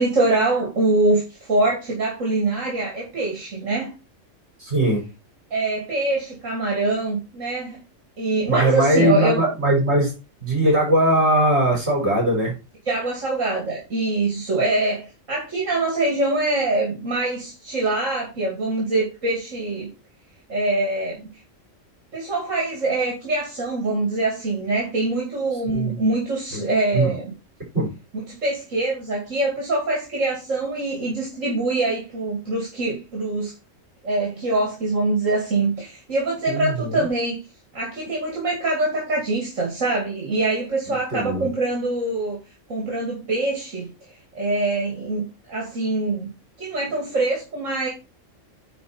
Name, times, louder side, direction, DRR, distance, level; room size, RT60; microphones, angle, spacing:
voice 1, 0.0-3.9 5.5-7.8 8.2-9.4 12.9-19.9 20.5-21.3 22.1-27.3 28.2-33.5 34.0-37.4 37.7-42.4 42.7-43.9 44.3-46.3 46.6-47.9, right 2 dB, 75° right, -2 dB, 2.8 m, -24 dB
voice 2, 4.6-5.0 8.5-10.1 10.4-12.6 25.7-26.0 26.9-27.1 27.7-27.9 36.5-37.0 41.1-41.5, right 1 dB, 55° right, -1 dB, 5.2 m, -20 dB
9.6 x 4.6 x 4.3 m, 0.29 s
omnidirectional pair, 1.3 m